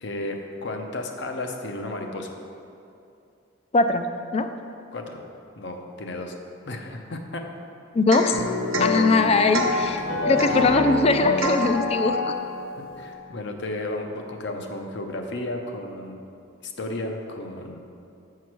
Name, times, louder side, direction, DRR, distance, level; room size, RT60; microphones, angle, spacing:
voice 1, 0.0-2.3 4.9-5.2 5.6-6.3 6.7-7.4 12.8-16.2 16.6-17.8, left 2 dB, 60° left, 3 dB, 0.7 m, -33 dB
voice 2, 3.7-4.1 4.3-4.5 7.9-8.4 8.8-12.3, left 3 dB, 30° left, 8 dB, 0.3 m, -21 dB
Domestic sounds home sounds / Chink clink / Drip, 8.1-8.4 8.7-9.0 9.5-9.8 10.4-10.6 11.4-11.7, right 2 dB, 75° right, 1.0 m, -28 dB
sound 1, 8.3-13.0, left 3 dB, 75° left, 1.8 m, -27 dB
7.0 x 4.7 x 6.0 m, 2.6 s
head